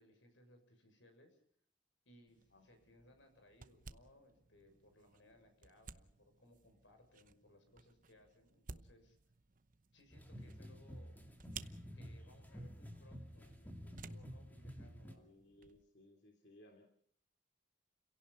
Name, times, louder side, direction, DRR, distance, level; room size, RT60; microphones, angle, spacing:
voice 1, 0.0-1.4 2.0-9.2 9.9-11.3 11.9-15.3, left 1 dB, 85° left, 6 dB, 6.8 m, -66 dB
sound 1, 2.3-15.8, right 5 dB, 45° right, 1.0 m, -58 dB
sound 2, 10.1-15.1, equal, 10° left, 2.6 m, -51 dB
voice 2, 15.1-16.9, left 1 dB, 65° left, 3 dB, 3.1 m, -63 dB
30.0 x 17.5 x 5.7 m, 0.63 s
head